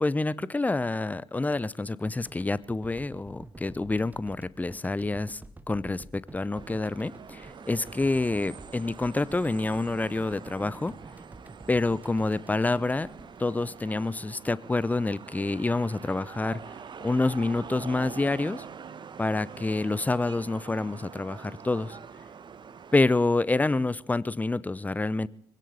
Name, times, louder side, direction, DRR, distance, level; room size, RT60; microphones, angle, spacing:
voice 1, 0.0-5.4 5.7-10.9 11.7-13.1 13.4-16.6 17.0-18.6 19.2-22.0 22.9-25.3, left 2 dB, 15° left, 21 dB, 0.6 m, -27 dB
sound 1, 2.2-14.5, right 2 dB, 15° right, 1.1 m, -49 dB
sound 2, 6.5-23.0, right 6 dB, 40° right, 1.3 m, -45 dB
25.0 x 17.0 x 3.4 m, 0.62 s
figure-of-eight pair, 45°, 12 cm